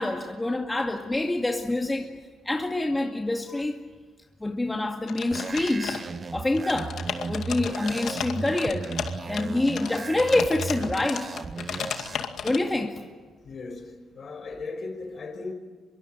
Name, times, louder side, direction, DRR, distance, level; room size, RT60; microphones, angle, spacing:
voice 1, 0.0-2.1 2.5-3.8 4.4-6.0 6.3-6.9 7.3-8.9 9.3-11.3 12.4-13.0, left 2 dB, 15° left, 2.2 m, -26 dB
sound 1, 5.1-6.2 6.5-12.6, left 8 dB, 70° left, 2.2 m, -34 dB
sound 2, 5.3-12.2, right 4 dB, 35° right, 0.8 m, -36 dB
voice 2, 13.4-15.5, left 3 dB, 50° left, 5.1 m, -37 dB
25.0 x 23.0 x 9.2 m
cardioid pair, 75°, 0 cm